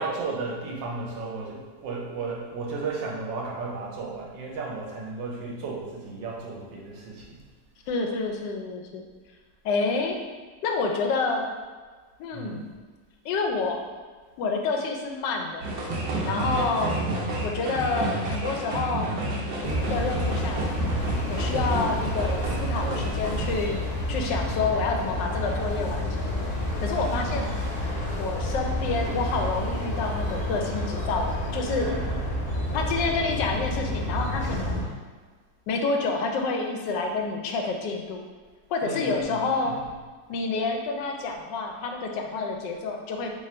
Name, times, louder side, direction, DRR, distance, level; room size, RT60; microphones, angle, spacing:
voice 1, 0.0-7.4 12.3-12.7 16.3-16.9 21.4-21.8 24.1-24.6 27.0-27.5 31.7-32.2 38.8-39.7, right 3 dB, 85° right, -2 dB, 1.5 m, -34 dB
voice 2, 7.9-9.0 9.6-10.2 10.6-11.5 12.2-12.7 13.2-13.8 14.4-15.6 16.2-17.0 17.4-20.8 21.3-23.8 24.1-26.2 26.8-27.5 28.2-31.9 32.7-34.9 35.7-38.2 38.7-39.8 40.3-43.3, left 4 dB, 80° left, 2 dB, 1.2 m, -28 dB
sound 1, 15.6-23.5, right 1 dB, 65° right, 1.0 m, -30 dB
sound 2, 19.6-34.8, left 1 dB, 35° left, 0.7 m, -29 dB
3.3 x 2.5 x 4.2 m, 1.4 s
omnidirectional pair, 1.9 m